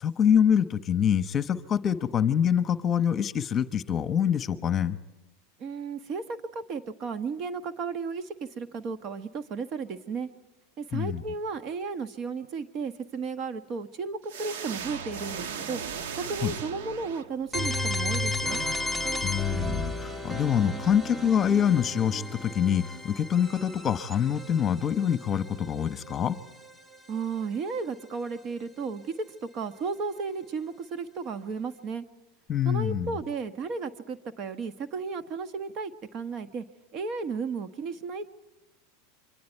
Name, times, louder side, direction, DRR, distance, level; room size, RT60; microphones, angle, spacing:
voice 1, 0.0-5.0 10.9-11.2 16.4-16.5 19.2-26.4 32.5-33.2, left 8 dB, 30° left, 12 dB, 1.1 m, -25 dB
voice 2, 5.6-10.3 10.8-15.8 16.1-18.6 27.1-32.0 32.6-36.6 36.9-38.3, right 4 dB, 45° right, 10 dB, 1.3 m, -34 dB
sound 1, 14.3-17.7, right 7 dB, 75° right, 1.5 m, -37 dB
sound 2, 17.5-27.3, left 1 dB, 10° right, 1.5 m, -34 dB
28.0 x 24.0 x 4.6 m, 1.1 s
hypercardioid pair, 110°, 0 cm